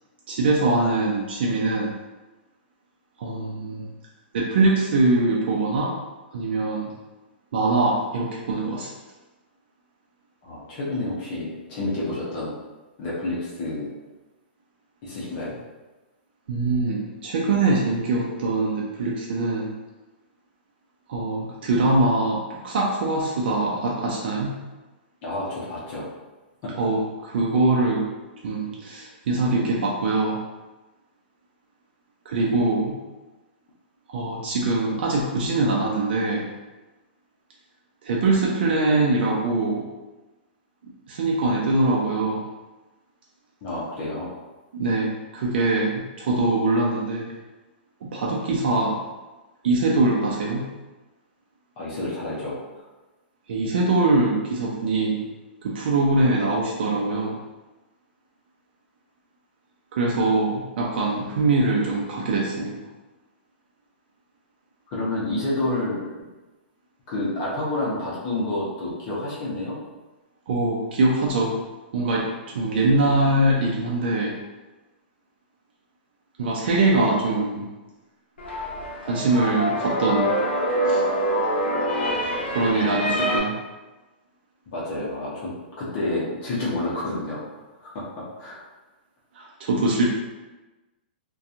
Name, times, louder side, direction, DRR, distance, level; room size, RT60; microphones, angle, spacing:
voice 1, 0.3-2.0 3.2-3.9 4.3-5.9 6.3-6.9 7.5-8.9 16.5-19.7 21.1-24.6 26.8-28.1 28.4-30.4 32.3-32.9 34.1-36.5 38.0-39.9 41.1-42.5 44.7-47.3 48.0-49.0 49.6-50.7 53.5-55.2 55.6-57.4 59.9-62.8 70.5-71.6 71.9-74.4 76.4-77.7 79.0-80.3 80.9-81.0 82.5-83.6 89.4-90.1, right 2 dB, 65° right, -3 dB, 0.5 m, -23 dB
voice 2, 10.4-12.5 13.0-13.9 15.0-15.6 25.2-26.1 26.6-26.7 43.6-44.3 51.8-52.6 64.9-66.0 67.1-69.8 82.8-83.3 84.7-85.5 85.8-87.4 87.8-88.1 88.4-88.6, left 2 dB, 35° left, -7 dB, 0.7 m, -29 dB
sound 1, 78.4-83.4, equal, 85° left, 0.6 m, -25 dB
2.7 x 2.2 x 2.5 m, 1.1 s
hypercardioid pair, 155°, 6 cm